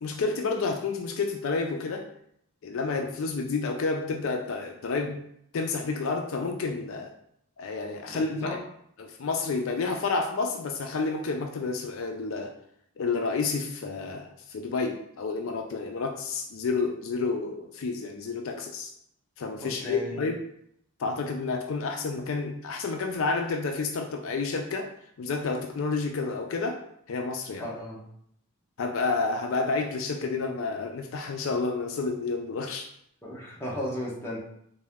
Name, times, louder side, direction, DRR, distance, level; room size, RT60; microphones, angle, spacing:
voice 1, 0.0-2.1 2.6-5.2 5.5-7.1 7.6-8.6 9.0-12.5 13.0-18.9 19.4-20.4 21.0-24.9 25.2-26.8 27.1-27.7 28.8-32.9, left 4 dB, 60° left, 4 dB, 0.4 m, -30 dB
voice 2, 8.1-8.6 19.6-20.2 27.6-28.0 33.2-34.4, left 1 dB, 10° left, -5 dB, 0.8 m, -35 dB
4.1 x 2.6 x 3.5 m, 0.71 s
head